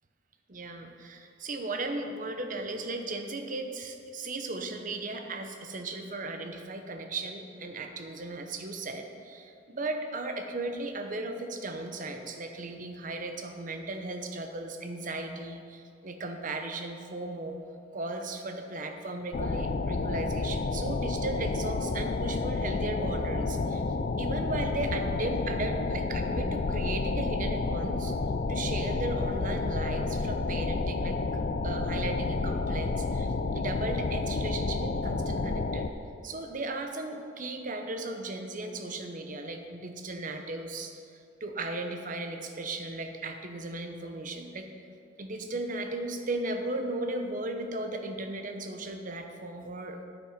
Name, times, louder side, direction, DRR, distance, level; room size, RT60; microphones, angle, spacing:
voice 1, 0.5-17.6 17.9-23.8 24.2-28.1 28.5-31.2 31.6-35.9 36.2-40.9 41.4-44.9 45.2-50.0, right 2 dB, 45° right, 5 dB, 0.9 m, -36 dB
sound 1, 19.3-35.9, left 3 dB, 45° left, 0.4 m, -30 dB
9.1 x 8.7 x 5.8 m, 2.4 s
head